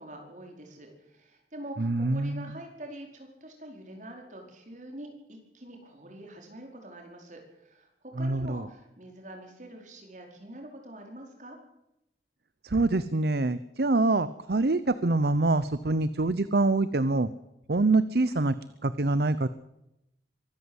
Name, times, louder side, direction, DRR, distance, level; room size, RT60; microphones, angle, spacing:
voice 1, 0.0-7.9 8.2-11.6, right 1 dB, 45° right, 2 dB, 4.9 m, -45 dB
voice 2, 1.8-2.5 8.2-8.7 12.6-17.3 17.7-18.5 18.8-19.5, right 2 dB, 60° right, 15 dB, 0.8 m, -25 dB
23.5 x 13.5 x 8.1 m, 0.86 s
head